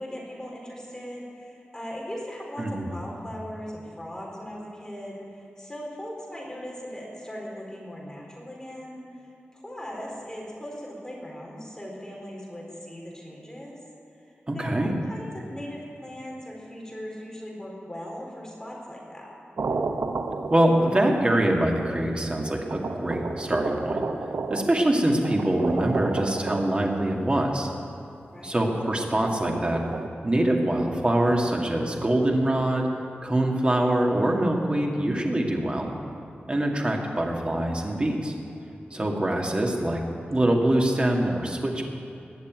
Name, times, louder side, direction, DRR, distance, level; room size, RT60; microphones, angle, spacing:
voice 1, 0.0-9.0 9.5-13.8 14.1-19.4 28.3-28.6 38.9-39.3, equal, 15° left, -3 dB, 4.2 m, -39 dB
voice 2, 14.5-14.9 20.5-24.0 24.5-27.7 28.4-29.8 30.2-32.9 33.2-35.9 36.5-38.3 38.9-40.0 40.3-41.8, right 1 dB, 30° right, 0 dB, 2.1 m, -24 dB
sound 1, 19.6-21.1 22.0-22.1 22.7-27.2 29.0-30.1, right 3 dB, 80° right, 0.9 m, -32 dB
20.0 x 7.3 x 9.2 m, 2.7 s
wide cardioid pair, 110°, 4 cm